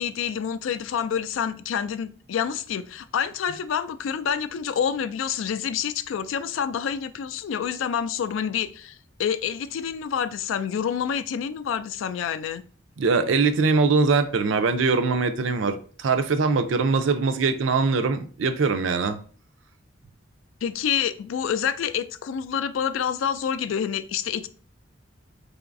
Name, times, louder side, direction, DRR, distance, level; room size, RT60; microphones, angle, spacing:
voice 1, 0.0-12.6 20.6-24.5, left 8 dB, 85° left, 0.3 m, -28 dB
voice 2, 13.0-19.2, right 4 dB, 75° right, 0.4 m, -22 dB
3.9 x 3.5 x 2.5 m
head